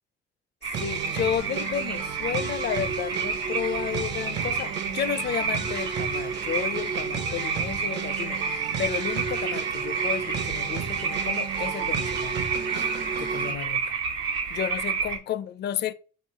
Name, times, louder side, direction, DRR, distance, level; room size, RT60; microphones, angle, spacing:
sound 1, 0.6-15.2, right 5 dB, 90° right, 1.1 m, -30 dB
sound 2, 0.7-13.5, right 6 dB, 65° right, 0.8 m, -33 dB
voice 1, 0.8-8.4 8.8-14.0 14.5-15.9, left 9 dB, 60° left, 0.5 m, -32 dB
4.2 x 3.1 x 4.1 m
cardioid pair, 90°, 20 cm